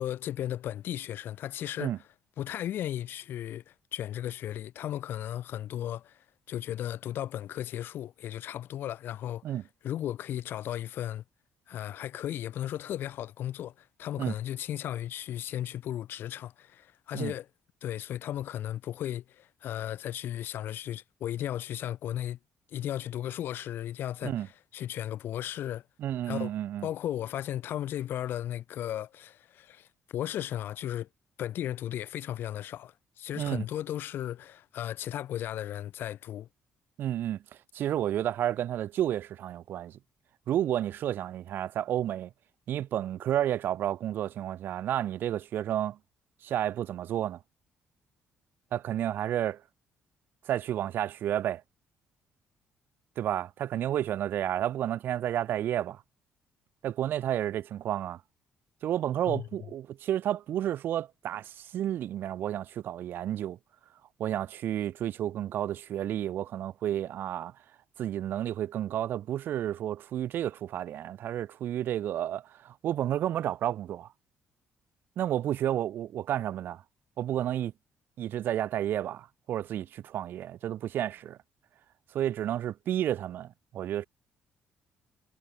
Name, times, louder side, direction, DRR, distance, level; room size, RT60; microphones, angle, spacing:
voice 1, 0.0-1.9 2.4-9.6 9.8-11.2 11.7-17.5 17.8-22.4 22.7-24.4 24.7-25.8 26.3-26.5 26.8-31.1 31.4-36.5 59.3-59.5, left 11 dB, 60° left, 7.1 m, -35 dB
voice 2, 26.0-26.9 33.4-33.6 37.0-37.4 37.7-40.0 40.5-42.3 42.7-46.0 46.4-47.4 48.7-49.6 50.4-51.6 53.2-56.0 56.8-58.2 58.8-63.6 64.2-67.5 68.0-74.1 75.2-76.8 77.2-77.7 78.2-81.4 82.1-84.0, right 11 dB, 55° right, 5.8 m, -31 dB
cardioid pair, 170°, 4 cm